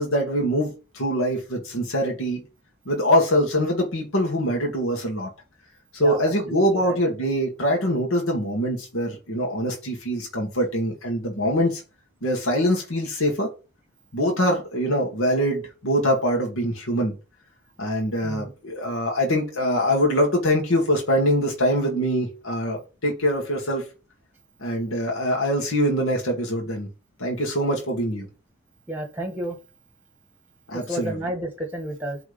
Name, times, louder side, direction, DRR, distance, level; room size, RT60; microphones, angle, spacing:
voice 1, 0.0-2.4 2.9-5.3 5.9-11.8 12.2-13.5 14.1-17.1 17.8-23.8 24.6-26.9 27.2-28.3 30.7-31.2, equal, 80° left, 1.9 m, -23 dB
voice 2, 6.5-7.0 18.2-18.5 28.9-29.6 30.7-32.2, right 1 dB, 10° right, 1.4 m, -31 dB
8.2 x 3.6 x 5.2 m
head